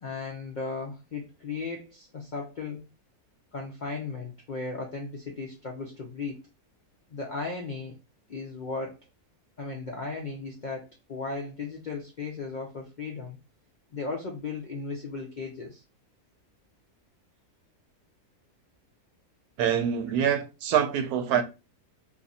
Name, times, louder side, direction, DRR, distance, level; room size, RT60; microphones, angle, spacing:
voice 1, 0.0-2.9 3.5-6.4 7.1-8.0 8.3-9.0 9.6-13.4 13.9-15.8, left 4 dB, 65° left, 0.4 m, -36 dB
voice 2, 19.6-21.4, right 8 dB, 80° right, 1.1 m, -25 dB
2.7 x 2.5 x 4.0 m
omnidirectional pair, 1.6 m